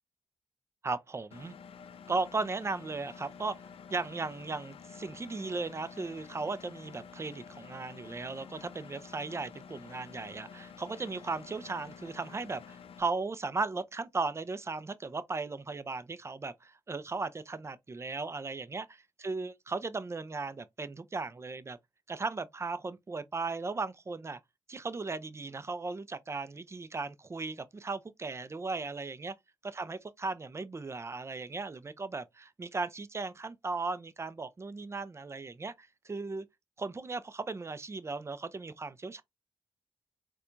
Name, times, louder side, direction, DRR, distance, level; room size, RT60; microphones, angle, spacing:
voice 1, 0.8-1.5 2.1-3.6 3.9-21.8 22.1-24.4 24.7-29.3 29.6-36.5 36.8-39.2, right 3 dB, 30° right, 0.4 m, -37 dB
Engine, 1.3-13.0, left 6 dB, 75° left, 0.4 m, -50 dB
4.1 x 2.2 x 2.5 m
cardioid pair, 60°, 10 cm